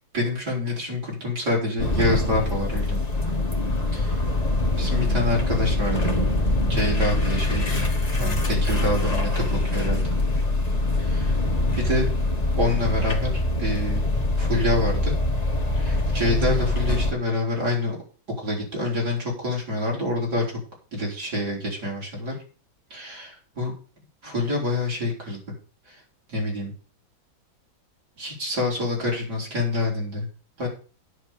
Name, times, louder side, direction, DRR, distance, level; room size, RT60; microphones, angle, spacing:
voice 1, 0.1-3.0 3.9-4.1 4.8-6.1 6.7-7.8 8.2-10.0 11.0-11.4 11.8-12.1 12.6-14.0 14.4-15.1 15.8-18.0 18.4-20.6 20.9-22.3 22.9-23.7 24.2-25.4 25.9-26.0 26.3-26.7 28.2-30.3 30.6-30.7, left 1 dB, 55° right, -3 dB, 5.4 m, -26 dB
sound 1, 1.8-17.1, left 2 dB, 20° left, 1.4 m, -24 dB
9.9 x 6.4 x 7.0 m, 0.38 s
omnidirectional pair, 2.1 m